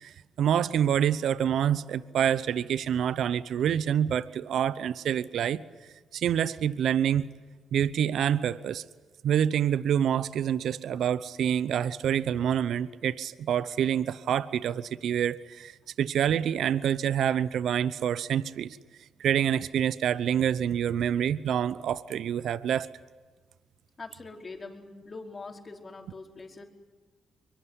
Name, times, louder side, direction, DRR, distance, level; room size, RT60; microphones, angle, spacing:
voice 1, 0.0-5.6 6.1-7.3 7.7-8.8 9.2-18.8 19.2-22.9, right 9 dB, 70° right, 17 dB, 0.8 m, -27 dB
voice 2, 24.0-26.6, left 3 dB, 40° left, 3 dB, 4.9 m, -43 dB
24.0 x 23.5 x 9.9 m, 1.4 s
supercardioid pair, 55°, 0 cm